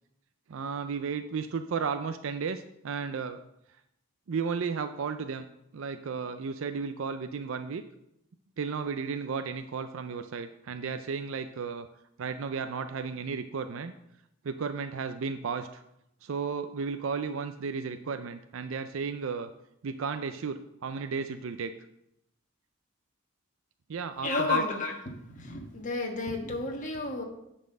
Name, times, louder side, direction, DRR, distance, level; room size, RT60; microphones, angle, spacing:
voice 1, 0.5-3.4 4.3-5.5 5.7-7.8 8.6-11.9 12.2-13.9 14.4-15.8 16.2-19.5 19.8-21.7 23.9-24.6, right 5 dB, 65° right, 9 dB, 0.4 m, -34 dB
voice 2, 24.2-24.9 25.3-27.2, left 3 dB, 35° left, 1 dB, 1.4 m, -31 dB
10.0 x 4.3 x 6.5 m, 0.82 s
head